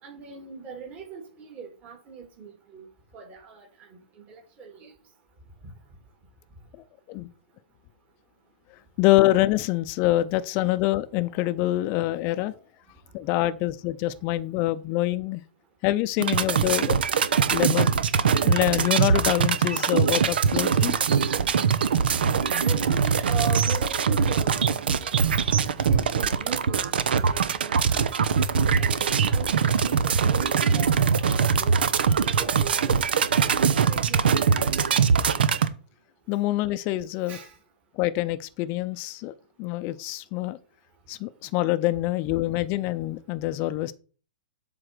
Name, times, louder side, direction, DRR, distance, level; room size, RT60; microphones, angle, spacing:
voice 1, 0.0-2.9 3.1-3.9 4.2-4.9 22.5-24.8 25.7-28.1 28.8-31.9 32.3-33.1 33.7-34.7 37.3-37.5, right 5 dB, 30° right, 2.6 m, -40 dB
voice 2, 9.0-12.6 13.1-15.4 15.8-17.0 17.5-18.0 18.4-20.9 36.3-37.4 37.9-40.6 41.1-43.9, left 16 dB, 40° left, 0.5 m, -25 dB
sound 1, 16.2-35.7, right 6 dB, 80° right, 0.7 m, -22 dB
7.8 x 3.8 x 6.0 m
hypercardioid pair, 125°, 5 cm